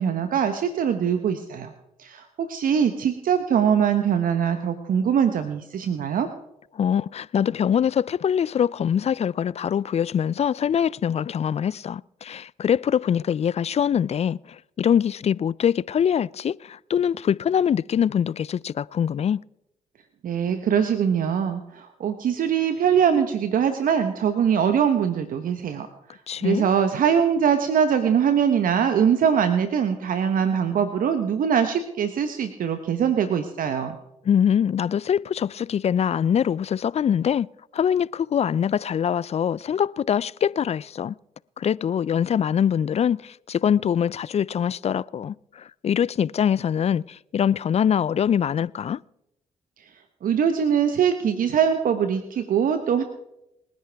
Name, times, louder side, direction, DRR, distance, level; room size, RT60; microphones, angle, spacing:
voice 1, 0.0-1.7 2.0-6.3 20.2-34.0 50.2-53.0, right 8 dB, 65° right, 1.0 m, -22 dB
voice 2, 6.7-19.4 26.3-26.7 34.2-37.5 37.7-41.2 41.6-49.0, left 8 dB, 45° left, 0.4 m, -23 dB
27.5 x 10.5 x 3.5 m
supercardioid pair, 50°, 15 cm